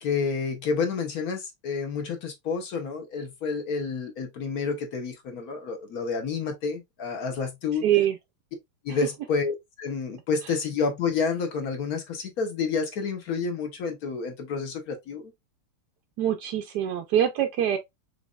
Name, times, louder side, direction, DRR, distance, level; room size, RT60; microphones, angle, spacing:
voice 1, 0.0-7.8 8.8-15.3, left 5 dB, 60° left, 1.0 m, -29 dB
voice 2, 7.8-8.2 8.9-9.0 10.4-10.5 16.2-17.8, right 10 dB, 80° right, 0.9 m, -24 dB
5.2 x 3.3 x 2.3 m
omnidirectional pair, 2.4 m